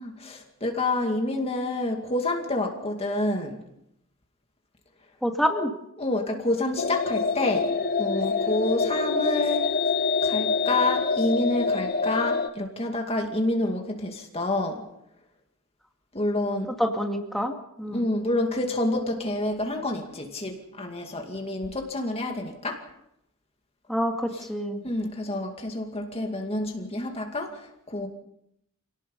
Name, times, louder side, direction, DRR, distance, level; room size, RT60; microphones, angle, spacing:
voice 1, 0.0-3.6 6.0-7.7 8.0-9.6 10.2-14.8 16.1-16.7 17.9-22.8 24.8-28.1, left 2 dB, 25° left, 3 dB, 2.3 m, -28 dB
voice 2, 5.2-5.7 16.8-18.1 23.9-24.8, equal, ahead, 2 dB, 2.3 m, -27 dB
sound 1, 6.8-12.5, left 4 dB, 40° left, 0.9 m, -26 dB
27.5 x 18.0 x 5.5 m, 0.78 s
head